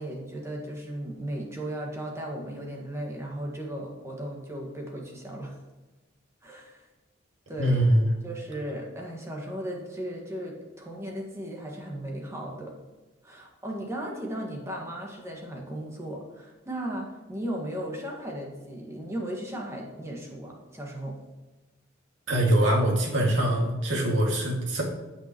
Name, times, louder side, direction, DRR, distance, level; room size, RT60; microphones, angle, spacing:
voice 1, 0.0-5.6 6.4-6.8 7.5-7.9 8.2-12.7 13.2-21.2, right 1 dB, 15° right, -1 dB, 1.5 m, -36 dB
voice 2, 7.6-8.1 22.3-24.8, right 1 dB, 70° right, -1 dB, 2.0 m, -23 dB
15.5 x 5.6 x 3.0 m, 1.1 s
head